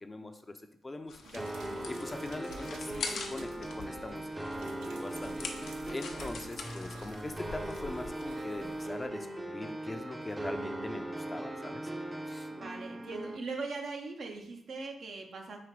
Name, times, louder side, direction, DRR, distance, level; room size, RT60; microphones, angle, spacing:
voice 1, 0.0-0.6 0.8-4.3 4.6-5.4 5.6-11.9 12.3-12.5, left 2 dB, 30° left, 7 dB, 0.5 m, -42 dB
sound 1, 1.1-9.1, left 4 dB, 75° left, 0.5 m, -45 dB
sound 2, 1.2-8.9 9.9-10.0, right 4 dB, 85° right, 0.3 m, -52 dB
sound 3, 1.4-13.4, right 1 dB, 20° right, 0.6 m, -39 dB
voice 2, 12.2-15.6, right 3 dB, 70° right, 2 dB, 0.8 m, -41 dB
4.9 x 2.8 x 3.1 m, 0.73 s
supercardioid pair, 50°, 0 cm